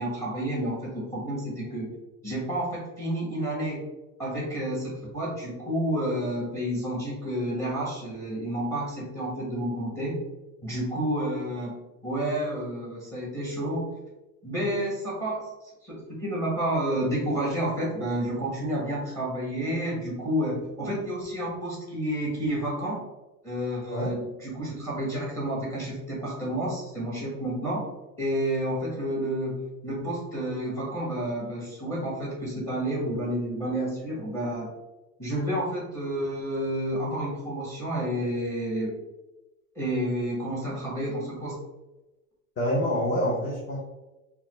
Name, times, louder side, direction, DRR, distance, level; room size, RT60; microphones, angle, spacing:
voice 1, 0.0-1.9 2.2-3.8 4.2-10.2 10.6-11.8 12.0-13.9 14.4-15.5 15.8-23.0 23.4-27.8 28.2-34.7 35.2-38.9 39.7-41.5, right 1 dB, 5° left, -4 dB, 1.2 m, -30 dB
voice 2, 42.6-43.8, equal, 25° left, -4 dB, 0.8 m, -26 dB
3.8 x 2.3 x 3.0 m, 1.0 s
supercardioid pair, 110°, 42 cm